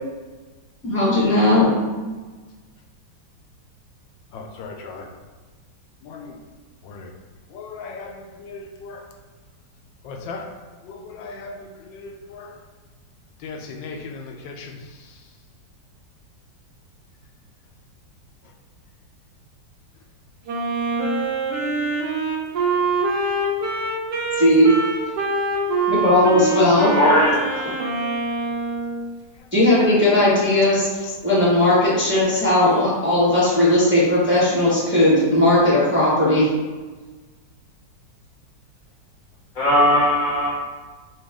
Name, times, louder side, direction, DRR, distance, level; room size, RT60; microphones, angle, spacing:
voice 1, 0.8-1.7 24.4-24.7 25.9-26.9 29.5-36.5, left 1 dB, 10° right, -8 dB, 0.9 m, -17 dB
voice 2, 4.3-5.1 6.0-6.4 6.8-7.1 7.5-9.1 10.0-10.5 10.8-12.5 13.4-15.2 25.8-25.9 28.3-28.5 29.4-29.5 31.0-31.2, left 4 dB, 85° left, 2 dB, 1.3 m, -37 dB
Wind instrument woodwind instrument, 20.5-29.0, right 3 dB, 65° right, 1.3 m, -24 dB
voice 3, 26.8-27.7 39.5-40.5, equal, 50° left, -7 dB, 1.6 m, -18 dB
6.0 x 2.4 x 3.6 m, 1.3 s
omnidirectional pair, 2.0 m